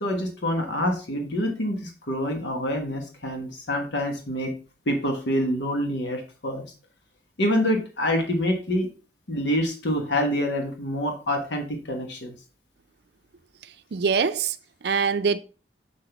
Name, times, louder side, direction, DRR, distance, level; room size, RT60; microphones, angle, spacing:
voice 1, 0.0-4.5 4.9-6.6 7.4-8.9 9.3-12.3, equal, 80° left, 1.4 m, -26 dB
voice 2, 13.6-15.4, right 5 dB, 65° right, 0.5 m, -25 dB
7.3 x 6.0 x 3.4 m
head